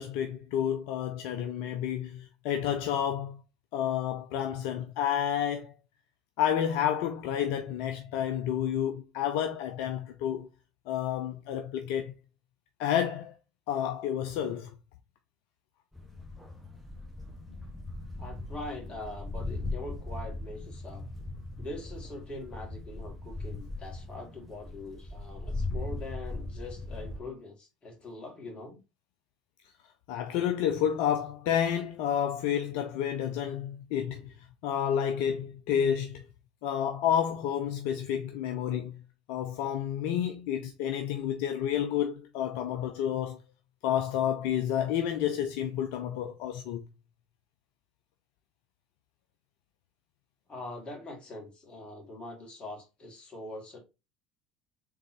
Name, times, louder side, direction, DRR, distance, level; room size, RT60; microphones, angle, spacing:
voice 1, 0.0-3.4 3.7-5.7 6.4-10.5 10.9-12.1 12.8-13.3 13.7-14.7 30.1-34.3 34.6-36.2 36.6-39.0 39.3-43.4 43.8-46.8, left 9 dB, 65° left, 0.5 m, -30 dB
sound 1, 15.9-27.2, left 2 dB, 5° left, 1.5 m, -39 dB
voice 2, 18.2-21.1 21.6-28.8 50.5-53.8, left 2 dB, 30° left, 2.2 m, -43 dB
3.8 x 3.7 x 2.9 m
hypercardioid pair, 70°, 3 cm